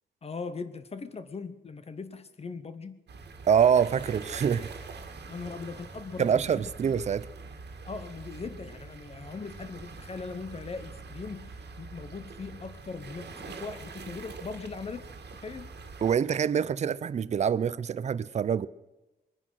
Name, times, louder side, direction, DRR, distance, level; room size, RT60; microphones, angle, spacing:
voice 1, 0.2-3.0 5.3-7.0 7.9-15.7, left 4 dB, 35° left, 0.8 m, -40 dB
sound 1, 3.1-16.2, right 4 dB, 65° right, 1.8 m, -44 dB
voice 2, 3.5-4.7 6.2-7.3 16.0-18.7, right 7 dB, 40° right, 0.4 m, -25 dB
22.0 x 9.9 x 6.3 m
wide cardioid pair, 155°, 18 cm